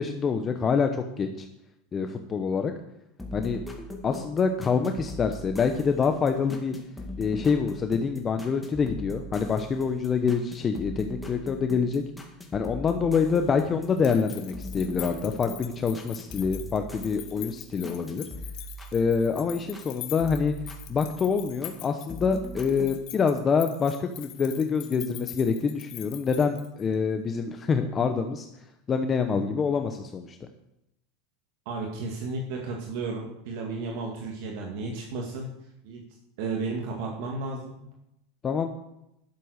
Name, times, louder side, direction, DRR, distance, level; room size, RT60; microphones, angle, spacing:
voice 1, 0.0-1.5 1.9-2.7 3.3-3.6 4.0-6.7 7.2-12.0 12.5-18.2 18.9-20.5 20.9-28.5 28.9-30.4 38.4-38.7, left 5 dB, 25° left, 6 dB, 0.8 m, -26 dB
sound 1, 3.2-19.9 20.2-21.8 22.1-22.9, left 1 dB, 5° left, 2.1 m, -41 dB
sound 2, 13.9-26.9, left 15 dB, 55° left, 1.5 m, -44 dB
voice 2, 31.7-35.5 35.8-36.0 36.4-37.9, right 3 dB, 65° right, 0 dB, 2.1 m, -33 dB
11.5 x 7.7 x 6.5 m, 0.83 s
supercardioid pair, 135°, 0 cm